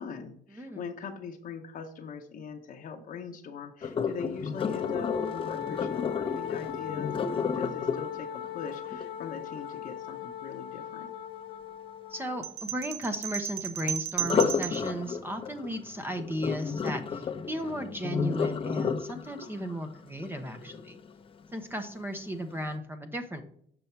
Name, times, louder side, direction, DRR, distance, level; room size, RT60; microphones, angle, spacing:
voice 1, 0.0-11.1, left 6 dB, 55° left, 1 dB, 0.9 m, -41 dB
Sink (filling or washing), 3.8-9.8 14.1-21.2 21.7-22.0 22.5-22.6, left 6 dB, 30° left, 0.7 m, -32 dB
Wind instrument woodwind instrument, 4.6-12.6, left 10 dB, 80° left, 0.6 m, -39 dB
voice 2, 12.1-21.0 21.5-23.4, equal, 10° right, 6 dB, 0.8 m, -35 dB
sound 1, 12.4-14.9, right 11 dB, 70° right, 0.7 m, -34 dB
6.9 x 5.4 x 4.4 m, 0.65 s
cardioid pair, 110°, 17 cm